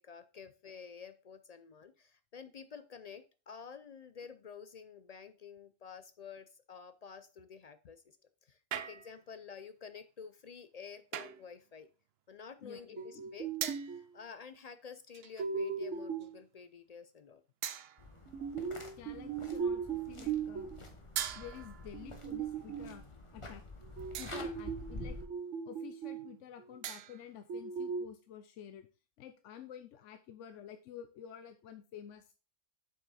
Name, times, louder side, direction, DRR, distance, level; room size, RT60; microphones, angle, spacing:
voice 1, 0.0-8.2 8.4-11.9 12.3-17.4, left 6 dB, 65° left, 11 dB, 0.4 m, -50 dB
sound 1, 8.7-9.3 11.1-11.5 13.6-14.0 15.1-15.5 16.2-16.4 17.6-18.2 21.1-22.0 24.1-24.6 26.8-27.4, right 10 dB, 65° right, 0.7 m, -41 dB
voice 2, 12.6-13.3 19.0-20.7 21.3-23.1 23.3-23.6 24.2-25.2 25.6-28.9 29.2-32.3, left 9 dB, 80° left, 9 dB, 1.0 m, -50 dB
sound 2, 13.0-14.1 15.4-16.4 18.3-20.8 21.9-23.0 24.0-26.3 26.6-26.7 27.5-28.0, right 6 dB, 80° right, 1.2 m, -38 dB
sound 3, 18.0-25.3, left 2 dB, 25° left, 1.2 m, -48 dB
7.3 x 5.7 x 4.1 m, 0.34 s
omnidirectional pair, 1.3 m